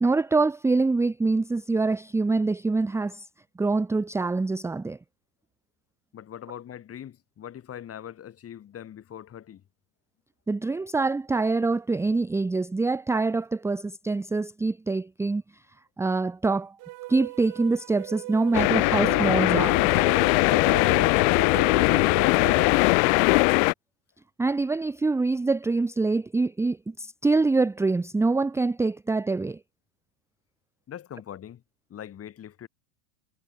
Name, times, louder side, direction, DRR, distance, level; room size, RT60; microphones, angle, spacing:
voice 1, 0.0-3.3 3.6-5.0 10.5-15.6 16.0-16.8 17.1-19.9 24.4-29.6, right 3 dB, 5° right, 0.7 m, -25 dB
voice 2, 6.1-9.6 20.9-22.9 30.9-31.6 31.9-32.7, left 10 dB, 30° left, 4.5 m, -41 dB
sound 1, 16.8-22.8, right 20 dB, 45° right, 1.7 m, -37 dB
sound 2, 18.5-23.7, left 33 dB, 60° left, 1.9 m, -20 dB
supercardioid pair, 125°, 47 cm